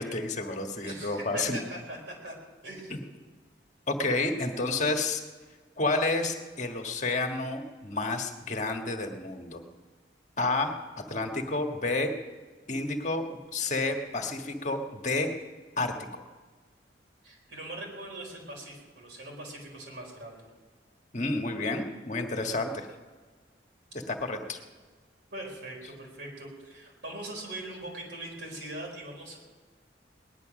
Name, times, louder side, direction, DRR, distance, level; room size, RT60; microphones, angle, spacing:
voice 1, 0.0-1.6 3.9-5.2 5.8-9.6 10.4-10.7 11.1-12.1 12.7-13.2 13.5-15.3 15.8-16.2 21.1-22.9 24.1-24.6, left 2 dB, 40° left, 4 dB, 1.5 m, -30 dB
voice 2, 0.8-2.0 2.2-2.3 2.6-2.9 17.2-20.5 25.3-29.4, right 1 dB, 70° right, -1 dB, 4.6 m, -41 dB
19.0 x 11.0 x 6.3 m, 1.4 s
head